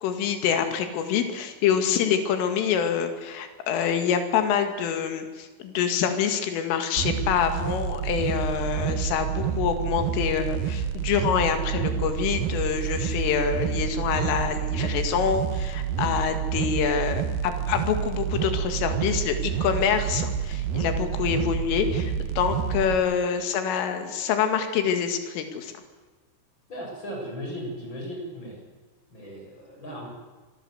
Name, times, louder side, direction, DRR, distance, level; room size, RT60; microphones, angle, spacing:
voice 1, 0.0-25.7, left 7 dB, 80° left, 7 dB, 4.7 m, -26 dB
sound 1, 7.0-23.0, right 8 dB, 80° right, 2.2 m, -28 dB
voice 2, 26.7-28.6 29.1-30.1, equal, 20° left, 0 dB, 7.9 m, -36 dB
26.0 x 20.5 x 8.1 m, 1.3 s
omnidirectional pair, 5.8 m